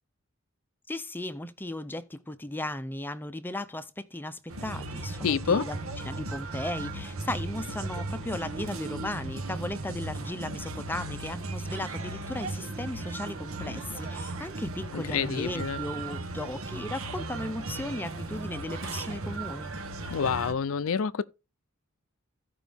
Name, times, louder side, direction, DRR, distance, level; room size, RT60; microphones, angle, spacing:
voice 1, 0.9-5.8 6.0-19.7, left 1 dB, 10° left, 0.5 m, -36 dB
sound 1, 4.5-20.5, right 2 dB, 75° right, 1.2 m, -36 dB
voice 2, 5.2-5.7 14.9-15.8 20.1-21.2, left 6 dB, 75° left, 0.5 m, -27 dB
15.0 x 5.1 x 3.5 m
head